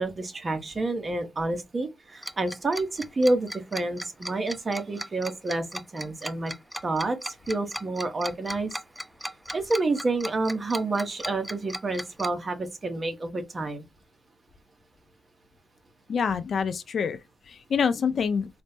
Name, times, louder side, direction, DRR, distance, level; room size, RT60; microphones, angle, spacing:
voice 1, 0.0-6.5 6.8-7.2 7.5-8.7 9.5-13.8, right 2 dB, 35° right, 0.9 m, -28 dB
Tick-tock, 2.2-12.3, equal, ahead, 0.3 m, -36 dB
voice 2, 16.1-17.2 17.5-18.5, left 6 dB, 55° left, 0.5 m, -26 dB
4.1 x 2.1 x 3.4 m
cardioid pair, 85°, 0 cm